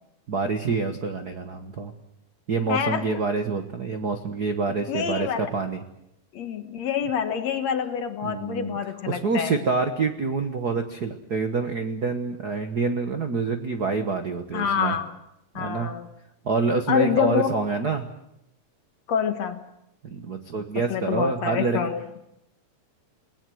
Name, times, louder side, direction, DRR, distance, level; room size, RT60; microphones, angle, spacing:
voice 1, 0.3-1.9 2.5-5.8 8.2-8.8 9.1-14.9 15.5-15.9 16.4-18.1 20.0-21.8, right 4 dB, 60° right, 6 dB, 1.0 m, -27 dB
voice 2, 2.7-3.2 4.9-5.5 6.3-9.6 14.5-15.2 15.5-16.1 16.9-17.6 19.1-19.6 20.9-22.2, left 8 dB, 60° left, 8 dB, 2.4 m, -27 dB
29.0 x 19.0 x 7.8 m, 0.83 s
omnidirectional pair, 3.9 m